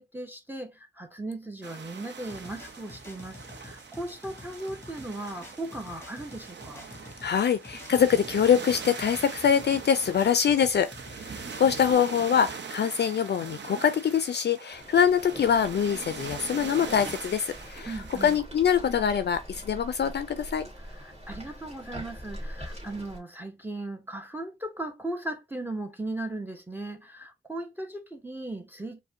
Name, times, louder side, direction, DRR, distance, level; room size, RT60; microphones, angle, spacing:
voice 1, 0.0-6.9 17.9-18.4 20.9-29.0, right 2 dB, 10° right, 0.7 m, -37 dB
sound 1, 1.6-18.4, right 5 dB, 60° right, 0.7 m, -42 dB
sound 2, 2.3-11.9, left 2 dB, 10° left, 1.1 m, -48 dB
voice 2, 7.2-18.0 18.2-20.6, left 8 dB, 55° left, 0.4 m, -24 dB
sound 3, 14.7-23.2, equal, 30° right, 1.9 m, -43 dB
4.8 x 2.1 x 2.7 m
cardioid pair, 65°, 21 cm